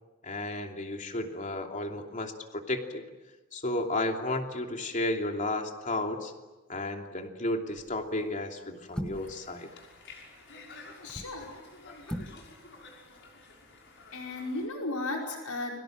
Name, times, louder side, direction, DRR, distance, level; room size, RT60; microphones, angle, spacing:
voice 1, 0.2-3.0 3.5-6.3 6.7-9.7, left 2 dB, 35° left, 3 dB, 2.9 m, -33 dB
sound 1, 7.8-8.1 8.9-9.4 10.9-11.4 12.0-12.4 12.7-12.8, equal, 5° left, 1.3 m, -38 dB
Conversation, 9.1-14.7, left 3 dB, 55° left, 6.3 m, -51 dB
voice 2, 11.0-11.5 14.1-15.8, left 2 dB, 80° left, 0 dB, 5.1 m, -35 dB
29.5 x 23.5 x 7.6 m, 1.1 s
head